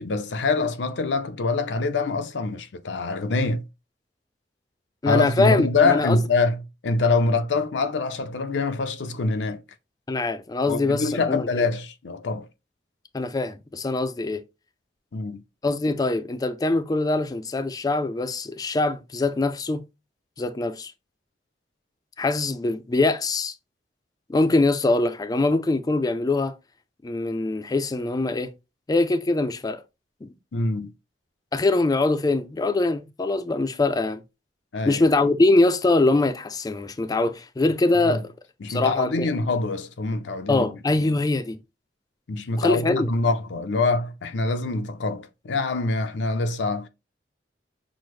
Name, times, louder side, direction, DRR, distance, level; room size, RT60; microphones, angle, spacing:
voice 1, 0.0-3.6 5.1-9.6 10.7-12.5 15.1-15.4 30.5-30.9 34.7-35.1 38.0-38.2 38.6-40.7 41.0-41.2 42.3-46.9, left 3 dB, 85° left, 0.6 m, -25 dB
voice 2, 5.0-6.2 10.1-11.6 13.1-14.4 15.6-19.8 20.4-20.9 22.2-23.5 24.3-26.5 27.0-28.5 28.9-29.8 30.2-30.3 31.5-34.2 34.9-38.2 38.7-39.3 40.5-41.6 42.6-43.1, left 2 dB, 20° left, 0.4 m, -23 dB
6.1 x 2.1 x 3.1 m
head